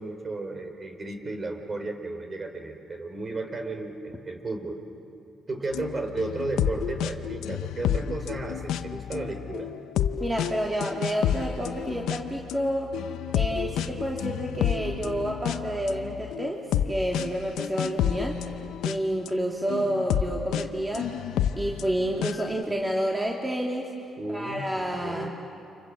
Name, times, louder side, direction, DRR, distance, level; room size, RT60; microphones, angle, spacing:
voice 1, 0.0-4.8 5.5-9.7 24.2-25.3, right 2 dB, 35° right, 5 dB, 3.9 m, -34 dB
sound 1, 5.7-19.3 19.7-22.6, left 10 dB, 85° left, 0.8 m, -30 dB
voice 2, 10.2-12.9 13.3-18.4 18.8-21.1 21.6-23.9 24.3-25.3, right 1 dB, 15° right, -1 dB, 2.6 m, -29 dB
29.5 x 27.0 x 7.4 m, 2.7 s
cardioid pair, 90°, 0 cm